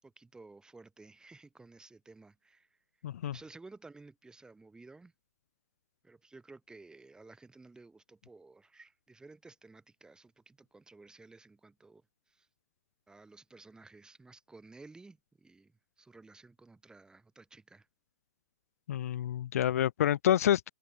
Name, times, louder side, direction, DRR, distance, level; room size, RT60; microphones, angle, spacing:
voice 1, 0.0-2.8 3.2-5.1 6.0-12.5 13.1-17.9, right 3 dB, 10° right, 6.4 m, -55 dB
voice 2, 3.0-3.3 18.9-20.7, left 11 dB, 60° left, 1.6 m, -28 dB
figure-of-eight pair, 105°, 9 cm